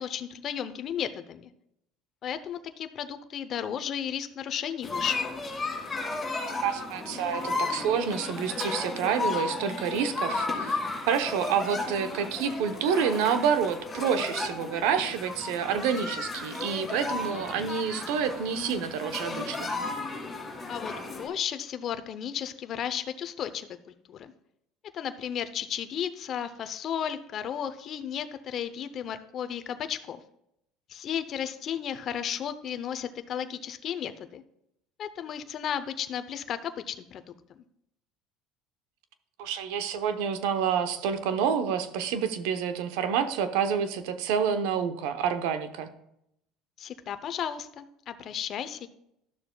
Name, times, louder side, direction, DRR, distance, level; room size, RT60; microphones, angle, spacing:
voice 1, 0.0-1.5 2.2-5.2 20.7-23.7 24.1-24.3 24.9-30.2 30.9-34.4 35.0-37.2 37.6-37.7 46.8-48.9, left 9 dB, 45° left, 10 dB, 0.6 m, -34 dB
sound 1, 4.8-21.3, left 3 dB, 20° left, 1.9 m, -34 dB
voice 2, 6.6-10.8 11.1-19.7 39.4-45.9, right 7 dB, 80° right, 9 dB, 0.8 m, -28 dB
12.0 x 6.8 x 2.3 m, 0.77 s
supercardioid pair, 110°, 0 cm